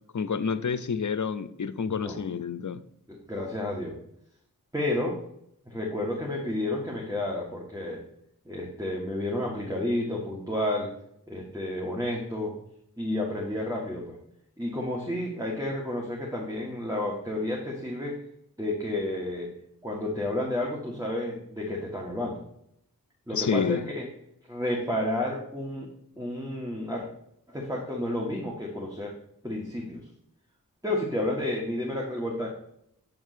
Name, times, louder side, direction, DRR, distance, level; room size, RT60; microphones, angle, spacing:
voice 1, 0.1-2.8 23.3-23.8, left 6 dB, 55° left, 13 dB, 0.6 m, -29 dB
voice 2, 1.8-2.2 3.1-4.0 4.7-5.2 5.6-8.0 8.4-10.9 11.3-12.5 13.0-14.2 14.6-18.2 18.6-19.5 19.8-22.4 23.3-24.1 24.5-27.0 27.5-29.2 29.4-30.1 30.8-32.5, left 1 dB, 10° right, -3 dB, 1.7 m, -31 dB
8.7 x 3.6 x 6.6 m, 0.72 s
wide cardioid pair, 50°, 35 cm